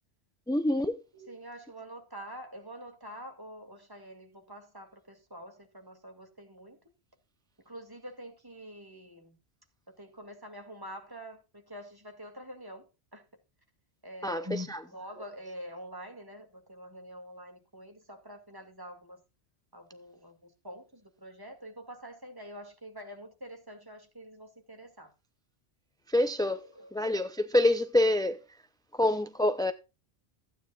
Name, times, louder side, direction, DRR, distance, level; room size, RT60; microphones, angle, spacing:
voice 1, 0.5-1.0 14.2-14.8 26.1-26.6 26.9-28.4 28.9-29.7, left 1 dB, 5° left, 0.4 m, -26 dB
voice 2, 1.1-6.8 7.6-9.4 9.9-13.3 14.0-19.2 19.7-25.1 26.4-26.9, equal, 20° right, 2.4 m, -46 dB
15.5 x 9.2 x 2.4 m
omnidirectional pair, 1.1 m